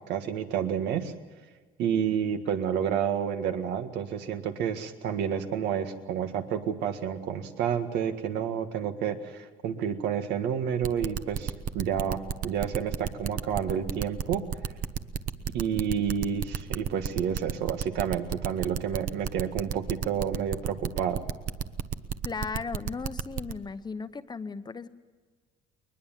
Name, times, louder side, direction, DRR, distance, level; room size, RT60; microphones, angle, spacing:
voice 1, 0.1-1.1 1.8-14.4 15.5-21.2, right 8 dB, 85° right, 7 dB, 1.8 m, -30 dB
sound 1, 10.8-23.5, right 8 dB, 55° right, 1.0 m, -31 dB
voice 2, 22.2-24.9, left 5 dB, 25° left, 11 dB, 0.9 m, -36 dB
21.5 x 21.0 x 7.5 m, 1.4 s
cardioid pair, 110°, 17 cm